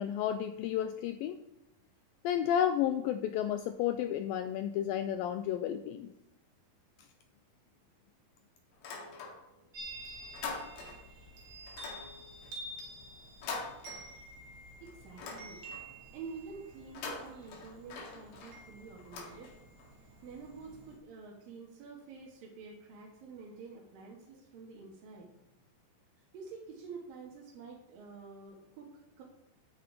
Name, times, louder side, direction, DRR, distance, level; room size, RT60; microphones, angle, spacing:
voice 1, 0.0-1.4 2.2-6.1, left 10 dB, 85° left, 9 dB, 2.0 m, -32 dB
sound 1, 8.7-9.7 10.0-11.2 11.7-14.5 14.9-16.0 16.8-19.9, left 4 dB, 70° left, 3.9 m, -44 dB
Chime, 9.7-21.0, right 1 dB, 80° right, 4.5 m, -50 dB
voice 2, 14.8-15.6 16.1-19.5 20.0-25.3 26.2-29.2, right 4 dB, 65° right, -4 dB, 3.3 m, -48 dB
11.5 x 8.9 x 4.7 m, 0.87 s
omnidirectional pair, 4.7 m